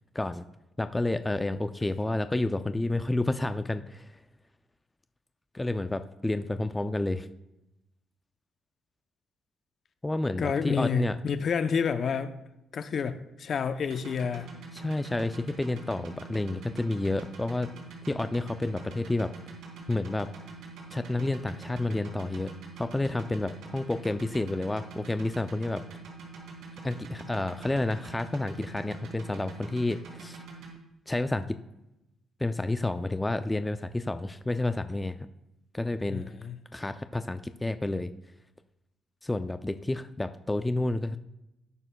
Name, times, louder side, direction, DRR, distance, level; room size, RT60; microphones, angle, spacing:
voice 1, 0.8-4.1 5.5-7.3 10.0-11.2 14.7-17.7 18.1-19.3 19.9-20.3 20.9-22.5 22.8-25.8 26.8-30.4 31.1-31.6 32.4-35.2 35.7-36.3 36.7-38.1 39.2-41.2, left 2 dB, 15° left, 10 dB, 0.4 m, -30 dB
voice 2, 10.4-12.3 12.7-14.5 36.1-36.6, left 6 dB, 55° left, 10 dB, 0.6 m, -29 dB
sound 1, 13.8-30.7, right 4 dB, 75° right, 3.2 m, -44 dB
18.0 x 6.7 x 2.3 m, 0.91 s
cardioid pair, 90°, 0 cm